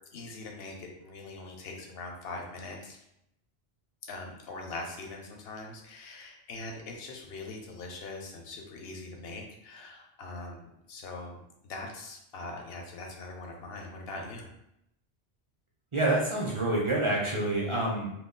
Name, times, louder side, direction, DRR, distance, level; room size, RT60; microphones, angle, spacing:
voice 1, 0.1-3.0 4.1-14.5, left 2 dB, 70° left, 1 dB, 0.8 m, -42 dB
voice 2, 15.9-18.2, right 2 dB, 40° right, -3 dB, 0.5 m, -27 dB
2.3 x 2.2 x 3.7 m, 0.81 s
omnidirectional pair, 1.1 m